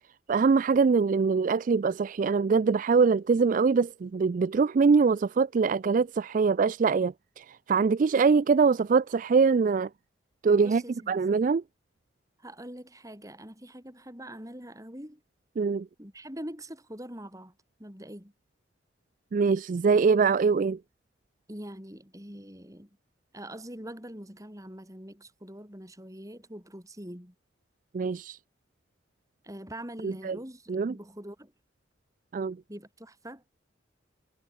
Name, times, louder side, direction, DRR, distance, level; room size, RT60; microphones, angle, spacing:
voice 1, 0.3-9.9 10.4-10.8 11.1-11.6 15.6-15.9 19.3-20.8 27.9-28.4 30.0-30.4 30.7-30.9 32.3-32.6, right 5 dB, 45° right, 0.3 m, -23 dB
voice 2, 10.6-11.1 12.4-15.2 16.0-17.5 17.8-18.3 21.5-22.9 23.3-27.3 29.4-31.5 32.7-33.4, right 1 dB, 15° right, 7.6 m, -43 dB
head